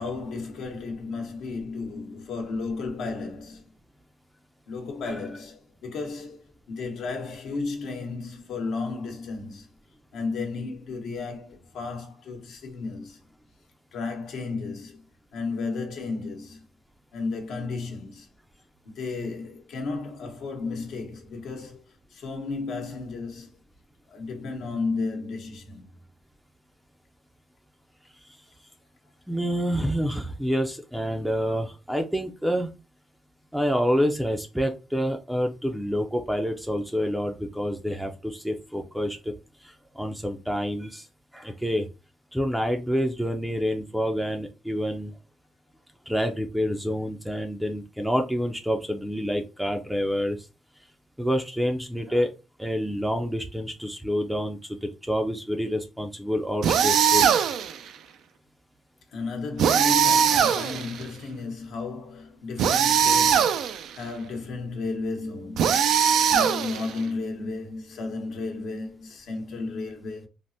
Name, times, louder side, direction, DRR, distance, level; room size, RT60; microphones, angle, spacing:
voice 1, 0.0-3.6 4.7-9.7 10.1-13.2 13.9-15.0 15.3-16.6 17.1-18.3 18.8-23.6 24.1-26.0 59.1-70.3, left 3 dB, 75° left, 0.9 m, -33 dB
voice 2, 29.3-32.7 33.5-39.3 39.6-41.1 41.3-41.9 42.3-45.1 46.1-50.4 51.2-52.3 52.6-57.3, equal, 5° right, 0.4 m, -27 dB
sound 1, 56.6-57.8 59.6-61.0 62.6-63.9 65.6-67.0, right 8 dB, 75° right, 0.3 m, -21 dB
3.4 x 2.0 x 2.6 m
cardioid pair, 90°, 0 cm